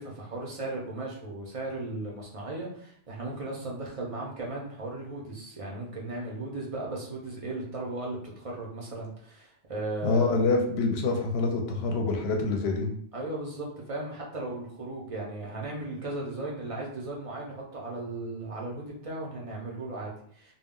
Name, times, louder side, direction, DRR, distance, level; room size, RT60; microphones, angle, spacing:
voice 1, 0.0-10.5 13.1-20.5, right 2 dB, 45° right, -3 dB, 0.5 m, -36 dB
voice 2, 10.0-12.9, left 3 dB, 70° left, 2 dB, 0.8 m, -26 dB
2.2 x 2.1 x 3.6 m, 0.62 s
omnidirectional pair, 1.2 m